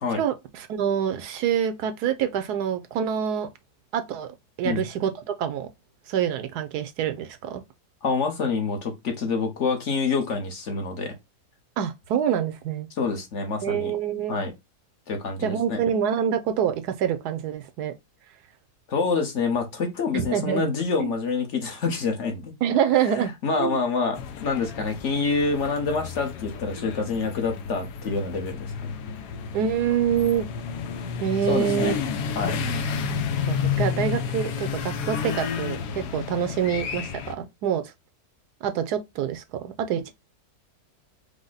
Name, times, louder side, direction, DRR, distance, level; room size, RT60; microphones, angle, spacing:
voice 1, 0.2-3.5 3.9-4.3 4.6-5.7 6.1-7.6 11.8-12.9 13.6-14.4 15.4-17.9 20.1-20.7 21.0-21.1 22.6-23.3 23.6-23.8 29.5-30.5 31.2-31.9 33.5-37.8 38.6-40.1, right 9 dB, 80° right, 1.2 m, -26 dB
voice 2, 8.0-11.1 13.0-13.9 14.3-14.5 15.1-15.8 18.9-22.5 23.1-28.9 31.5-31.9 32.3-32.6, left 4 dB, 55° left, 1.1 m, -27 dB
sound 1, 24.2-37.3, left 6 dB, 90° left, 1.2 m, -31 dB
5.0 x 2.1 x 3.9 m
omnidirectional pair, 1.7 m